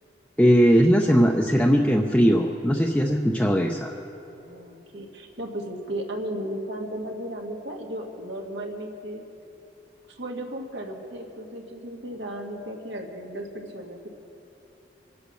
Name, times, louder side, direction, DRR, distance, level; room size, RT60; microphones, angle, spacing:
voice 1, 0.4-4.0, equal, 5° left, 0 dB, 0.6 m, -19 dB
voice 2, 4.3-9.2 10.2-14.1, right 1 dB, 80° right, 1 dB, 1.9 m, -35 dB
24.5 x 8.3 x 6.3 m, 2.9 s
head